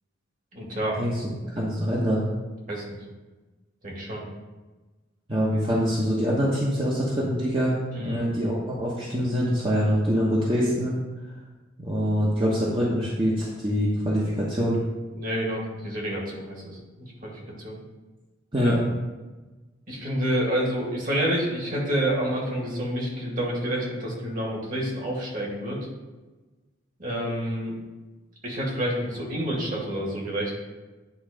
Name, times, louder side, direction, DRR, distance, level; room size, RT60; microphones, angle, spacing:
voice 1, 0.5-1.0 2.7-2.8 3.8-4.2 7.9-8.3 15.1-17.8 18.5-18.8 19.9-25.8 27.0-27.8 28.4-30.5, right 1 dB, 40° right, -3 dB, 2.1 m, -28 dB
voice 2, 1.5-2.2 5.3-10.9 11.8-14.8 18.5-18.8, equal, 25° right, -6 dB, 1.1 m, -24 dB
9.7 x 3.9 x 5.2 m, 1.2 s
head